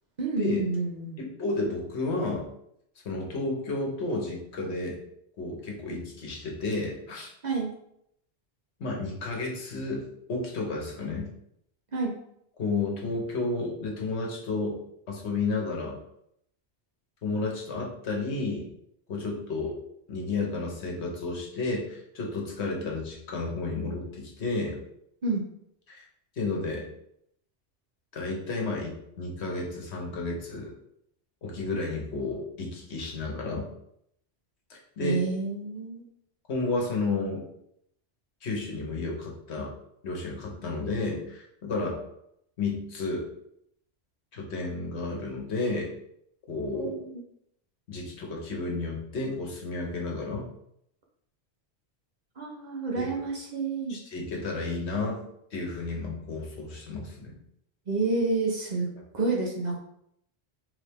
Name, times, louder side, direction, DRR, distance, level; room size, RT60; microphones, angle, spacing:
voice 1, 0.2-1.2 7.4-7.7 11.9-12.1 25.2-25.4 35.0-36.0 46.7-47.2 52.4-54.0 57.9-58.9 59.1-59.8, right 3 dB, 45° right, -1 dB, 0.8 m, -29 dB
voice 2, 1.2-2.5 3.0-5.0 5.4-7.3 8.8-10.0 10.3-11.3 12.6-14.8 15.1-16.0 17.2-18.7 19.1-19.8 20.1-24.8 25.9-26.0 26.4-26.9 28.1-30.7 31.4-33.6 34.7-35.2 36.5-37.4 38.4-39.7 40.0-42.0 42.6-43.3 44.3-45.9 46.5-47.0 47.9-50.5 53.0-53.1 53.9-55.2 55.5-57.4, left 3 dB, 75° left, -1 dB, 1.3 m, -32 dB
3.5 x 3.3 x 3.5 m, 0.74 s
omnidirectional pair, 1.1 m